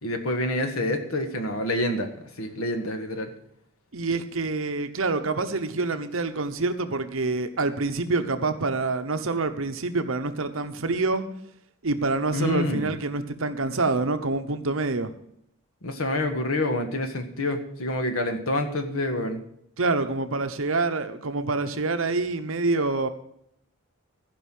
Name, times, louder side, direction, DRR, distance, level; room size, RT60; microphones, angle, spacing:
voice 1, 0.0-2.1 2.4-3.3 12.3-12.9 15.8-19.4, left 1 dB, 80° left, 6 dB, 1.6 m, -27 dB
voice 2, 3.9-11.2 11.8-15.1 19.8-23.1, right 3 dB, 65° right, 8 dB, 1.0 m, -26 dB
15.0 x 5.4 x 7.6 m, 0.73 s
head